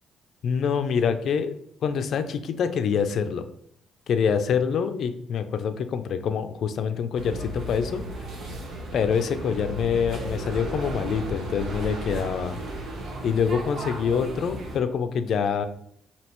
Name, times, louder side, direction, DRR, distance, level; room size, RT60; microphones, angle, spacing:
voice 1, 0.4-1.5 1.8-3.5 4.1-8.3 8.9-12.6 13.2-15.6, left 6 dB, 65° left, 9 dB, 0.4 m, -26 dB
sound 1, 7.2-14.8, right 2 dB, 70° right, 1.0 m, -35 dB
5.1 x 2.8 x 3.0 m, 0.67 s
cardioid pair, 90°, 0 cm